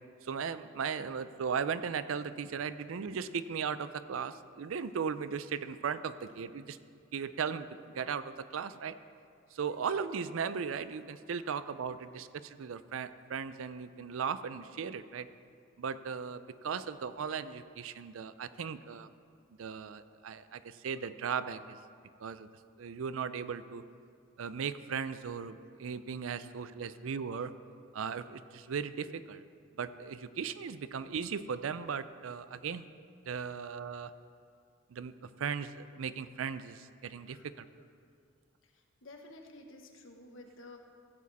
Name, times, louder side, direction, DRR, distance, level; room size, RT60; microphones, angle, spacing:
voice 1, 0.2-6.8 7.1-7.7 7.9-8.9 9.5-15.3 15.8-19.1 19.6-21.8 22.2-22.5 22.8-23.8 24.4-27.5 27.9-29.4 29.7-32.9 33.3-34.1 34.9-37.7, right 6 dB, 85° right, 13 dB, 0.4 m, -37 dB
voice 2, 39.0-40.8, left 2 dB, 75° left, 2 dB, 1.3 m, -52 dB
15.5 x 7.4 x 4.1 m, 2.3 s
head